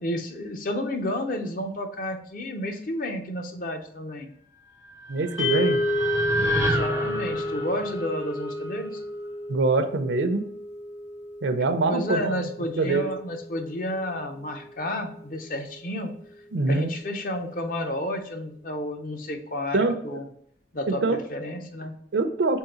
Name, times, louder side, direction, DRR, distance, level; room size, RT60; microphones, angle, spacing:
voice 1, 0.0-4.3 6.4-9.0 11.9-16.1 16.6-20.3 20.7-22.0, left 1 dB, 45° left, 5 dB, 0.5 m, -31 dB
sound 1, 4.8-9.1, right 1 dB, 15° right, 0.4 m, -30 dB
voice 2, 5.1-5.8 9.5-10.4 11.4-12.3 12.8-13.1 16.5-16.9 19.7-19.9 20.9-21.2 22.1-22.6, right 3 dB, 75° right, 8 dB, 0.5 m, -24 dB
sound 2, 5.4-15.7, left 1 dB, 85° left, 1.1 m, -32 dB
3.6 x 3.0 x 2.9 m, 0.68 s
head